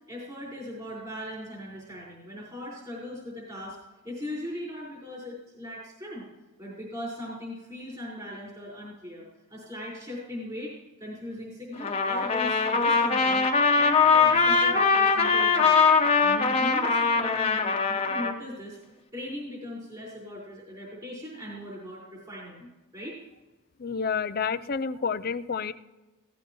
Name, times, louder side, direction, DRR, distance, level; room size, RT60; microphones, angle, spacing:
voice 1, 0.1-3.8 4.0-6.2 6.6-9.2 9.5-10.7 11.0-13.5 13.7-15.9 16.2-18.8 19.1-23.2 24.9-25.0, left 1 dB, 20° right, -6 dB, 4.8 m, -39 dB
Trumpet, 11.8-18.3, left 5 dB, 25° left, 1.1 m, -22 dB
voice 2, 23.8-25.7, left 6 dB, 45° left, 12 dB, 0.5 m, -29 dB
17.0 x 15.0 x 3.1 m, 1.1 s
head